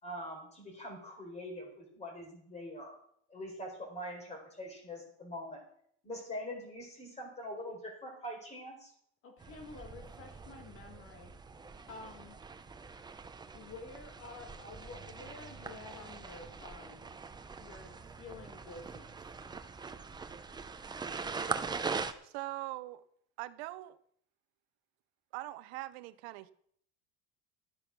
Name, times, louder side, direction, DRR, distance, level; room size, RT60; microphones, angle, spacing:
voice 1, 0.0-3.0 3.3-5.6 6.0-8.9, equal, 20° left, 4.6 m, -43 dB
voice 2, 9.2-11.3 11.9-12.4 13.5-17.0 17.6-19.2, left 4 dB, 45° left, 1.8 m, -50 dB
sound 1, 9.4-22.1, right 5 dB, 15° right, 0.8 m, -42 dB
voice 3, 22.2-23.0 23.4-24.0 25.3-26.5, right 18 dB, 80° right, 0.8 m, -42 dB
12.0 x 8.7 x 6.1 m
cardioid pair, 135°, 31 cm